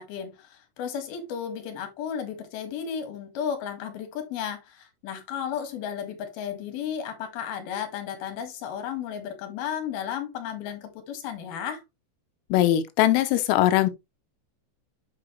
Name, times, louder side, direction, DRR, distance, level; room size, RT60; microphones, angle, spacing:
voice 1, 0.0-11.8, left 8 dB, 60° left, 3.1 m, -34 dB
voice 2, 12.5-13.9, left 13 dB, 90° left, 3.6 m, -21 dB
8.7 x 6.1 x 3.1 m
omnidirectional pair, 5.8 m